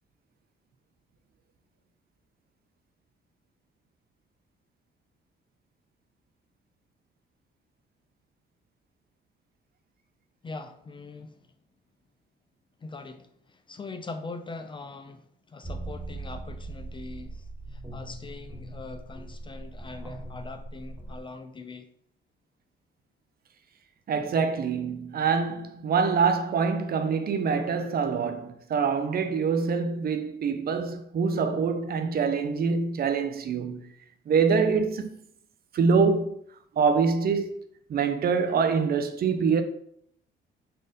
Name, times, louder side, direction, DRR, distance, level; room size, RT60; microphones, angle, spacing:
voice 1, 10.4-11.4 12.8-21.9, left 3 dB, 25° left, 0.3 m, -42 dB
sound 1, 15.6-21.2, right 2 dB, 5° right, 0.9 m, -40 dB
voice 2, 24.1-33.8 34.3-35.1 35.7-36.4 36.8-37.6 37.9-39.6, right 5 dB, 50° right, 0.5 m, -25 dB
4.2 x 2.5 x 3.7 m
cardioid pair, 90°, 20 cm